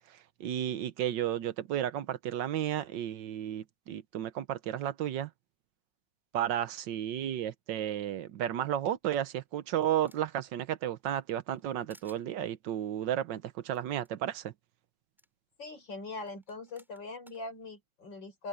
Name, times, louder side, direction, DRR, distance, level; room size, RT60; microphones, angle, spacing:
voice 1, 0.4-5.3 6.3-14.5, right 11 dB, 80° right, 1.5 m, -33 dB
sound 1, 9.1-10.5 10.9-11.6 11.9-12.2 13.7-13.8 14.0-14.1 15.2-15.3 16.3-17.4, equal, ahead, 7.1 m, -62 dB
voice 2, 15.6-18.5, left 2 dB, 80° left, 5.2 m, -41 dB
open air
omnidirectional pair, 2.0 m